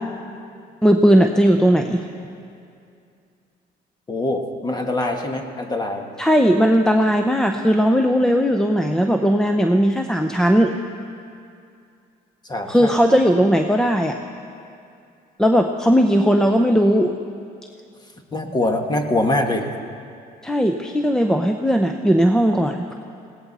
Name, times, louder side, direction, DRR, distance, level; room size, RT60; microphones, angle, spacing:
voice 1, 0.8-2.0 6.2-10.7 12.7-14.2 15.4-17.2 20.4-22.9, equal, 5° left, 4 dB, 0.6 m, -17 dB
voice 2, 4.1-6.1 12.5-12.9 18.3-19.7, left 2 dB, 25° left, 4 dB, 1.6 m, -23 dB
19.5 x 17.5 x 4.2 m, 2.4 s
cardioid pair, 110°, 17 cm